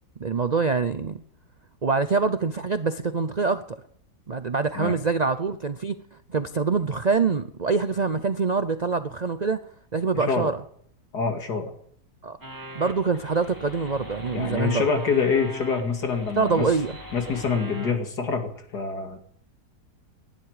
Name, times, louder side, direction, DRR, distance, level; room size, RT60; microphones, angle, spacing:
voice 1, 0.2-1.2 1.8-3.8 4.3-6.0 6.3-9.6 9.9-10.6 12.2-12.4 12.7-14.9 16.4-17.0, right 4 dB, 50° right, 0.5 m, -25 dB
voice 2, 10.1-10.5 11.1-11.7 14.3-16.7 17.1-19.2, left 5 dB, 75° left, 2.8 m, -26 dB
sound 1, 12.4-17.9, equal, 10° right, 2.0 m, -40 dB
19.0 x 11.5 x 4.9 m
omnidirectional pair, 1.8 m